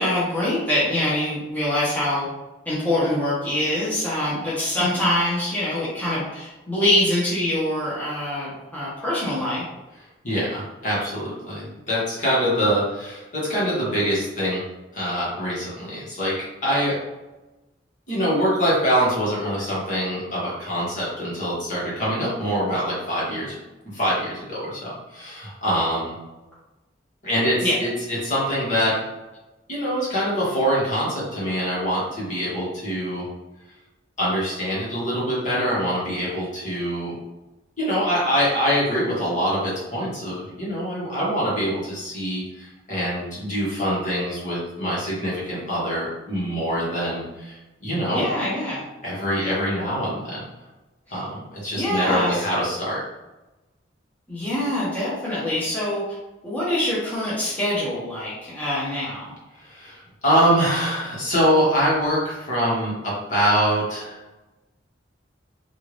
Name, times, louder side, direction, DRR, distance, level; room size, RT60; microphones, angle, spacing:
voice 1, 0.0-2.3 2.7-9.6 27.6-27.8 48.1-48.8 51.1-51.2 51.7-52.4 54.3-56.0 56.4-59.3, left 1 dB, 10° left, -9 dB, 0.9 m, -24 dB
voice 2, 10.2-14.6 14.9-17.0 18.1-23.6 23.9-26.1 27.2-29.0 29.7-33.3 34.2-37.1 37.8-48.3 49.0-50.4 51.1-53.0 59.6-64.2, equal, 45° left, -7 dB, 1.5 m, -24 dB
3.4 x 2.5 x 3.2 m, 1.1 s
head